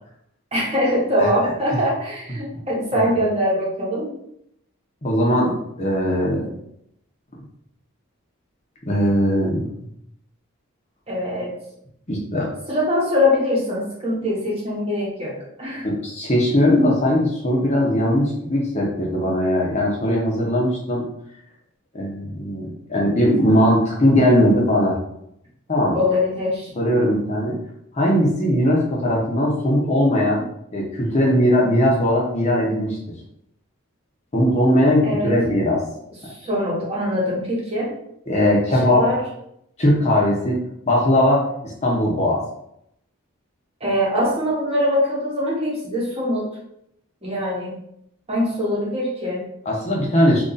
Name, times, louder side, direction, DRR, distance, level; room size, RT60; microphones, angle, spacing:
voice 1, 0.5-4.1 11.1-11.5 12.7-15.3 15.6-15.9 25.9-26.7 35.0-35.3 36.2-37.9 39.0-39.2 43.8-46.5 47.2-47.8 48.3-49.5, left 1 dB, 25° right, -6 dB, 1.0 m, -22 dB
voice 2, 5.0-6.5 8.9-9.7 12.1-12.5 15.8-21.0 21.9-25.0 25.7-26.0 26.8-27.6 27.9-30.4 30.7-33.0 34.3-35.8 36.2-36.3 38.3-39.2 39.8-40.6 40.9-41.5 41.8-42.4 49.7-50.4, equal, 30° left, -3 dB, 0.7 m, -19 dB
2.9 x 2.6 x 3.9 m, 0.76 s
head